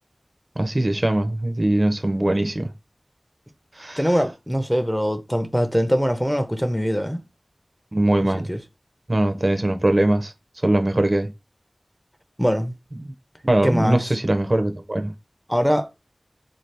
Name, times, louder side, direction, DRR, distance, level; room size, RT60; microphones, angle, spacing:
voice 1, 0.6-2.7 3.8-4.0 7.9-8.5 9.1-10.3 10.6-11.3 13.0-13.1 13.4-15.1, right 1 dB, 45° right, 0.5 m, -21 dB
voice 2, 4.0-7.2 8.3-8.6 12.4-12.8 13.6-14.1 15.5-15.9, equal, 5° left, 0.6 m, -22 dB
3.9 x 2.7 x 3.2 m
wide cardioid pair, 50°, 0 cm